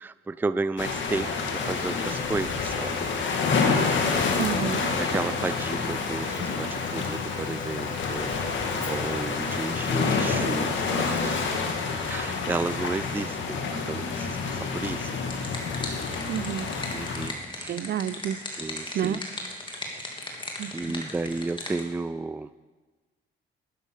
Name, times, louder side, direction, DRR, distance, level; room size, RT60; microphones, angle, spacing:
voice 1, 0.0-3.1 4.9-11.5 12.0-15.2 16.9-17.8 18.5-19.2 19.9-20.1 20.7-22.6, right 3 dB, 10° right, 15 dB, 0.4 m, -33 dB
sound 1, 0.8-17.3, left 4 dB, 70° left, 1.9 m, -28 dB
Buzz, 1.5-11.5, left 4 dB, 40° left, 1.5 m, -42 dB
voice 2, 4.4-4.9 16.3-16.7 17.7-18.4 18.9-19.2 20.6-20.7, right 10 dB, 55° right, 17 dB, 0.6 m, -29 dB
sound 2, 15.3-21.8, left 2 dB, 25° left, 2.7 m, -37 dB
12.5 x 9.7 x 6.6 m, 1.3 s
cardioid pair, 90°, 20 cm